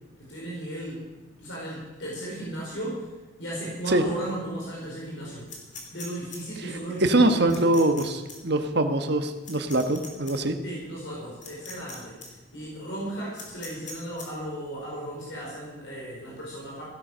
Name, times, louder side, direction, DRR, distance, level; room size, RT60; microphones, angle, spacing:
voice 1, 0.2-1.1 1.4-3.1 3.4-5.5 5.9-7.8 10.6-16.8, right 1 dB, 70° left, -4 dB, 5.0 m, -35 dB
sound 1, 5.5-6.4 7.5-8.0 8.3-8.4 9.4-10.3 11.4-11.9 12.2-12.3 13.4-14.3, left 4 dB, 40° left, 3.4 m, -41 dB
voice 2, 7.0-10.6, right 2 dB, 60° right, 7 dB, 1.3 m, -23 dB
16.0 x 11.0 x 6.4 m, 1.2 s
head